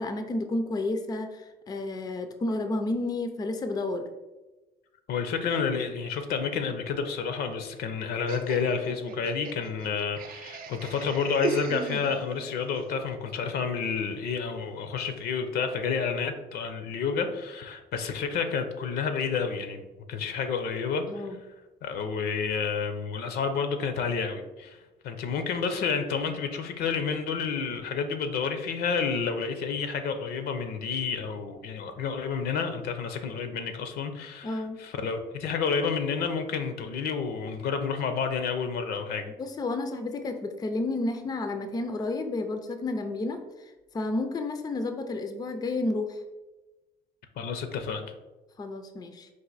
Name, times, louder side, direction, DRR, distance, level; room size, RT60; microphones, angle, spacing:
voice 1, 0.0-4.0 21.1-21.4 34.4-34.8 39.4-43.4 43.9-46.2 48.6-49.3, left 2 dB, 25° left, 7 dB, 0.4 m, -31 dB
voice 2, 5.1-21.2 21.8-39.3 47.4-48.1, left 6 dB, 70° left, 8 dB, 0.6 m, -30 dB
Laughter, 8.3-12.5, right 4 dB, 60° right, 0.5 m, -36 dB
4.8 x 2.5 x 4.0 m, 1.1 s
cardioid pair, 110°, 17 cm